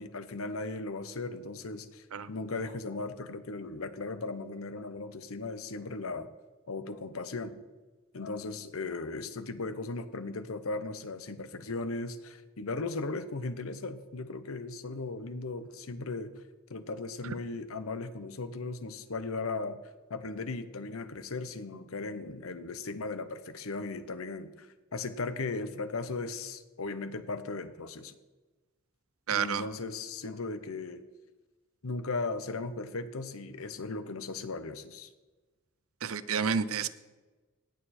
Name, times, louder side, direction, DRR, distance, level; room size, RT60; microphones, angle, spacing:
voice 1, 0.0-6.3 6.7-7.6 8.1-16.3 16.7-19.8 20.1-28.1 29.3-31.0 31.8-35.1, left 3 dB, 75° left, 11 dB, 0.9 m, -37 dB
voice 2, 29.3-29.7 36.0-36.9, right 6 dB, 75° right, 15 dB, 0.6 m, -30 dB
18.0 x 6.8 x 4.3 m, 1.2 s
head